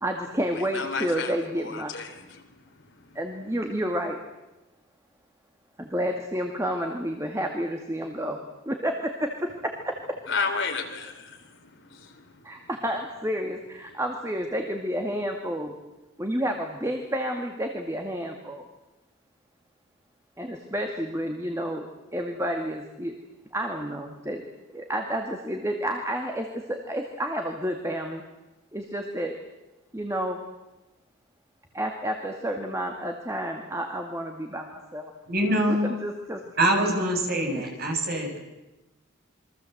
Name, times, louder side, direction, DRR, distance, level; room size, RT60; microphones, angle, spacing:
voice 1, 0.0-1.9 3.2-4.2 5.8-8.4 8.7-10.0 12.4-15.8 16.2-18.6 20.4-23.1 23.5-24.4 24.7-28.2 28.7-29.4 29.9-30.4 31.7-35.1 35.7-36.6 37.5-37.7, equal, 15° right, 3 dB, 2.1 m, -30 dB
voice 2, 0.7-2.1 10.3-12.1, left 4 dB, 60° left, 4 dB, 3.9 m, -32 dB
voice 3, 35.3-35.9 36.6-38.4, right 1 dB, 45° right, 1 dB, 7.1 m, -24 dB
28.0 x 23.5 x 8.0 m, 1.0 s
head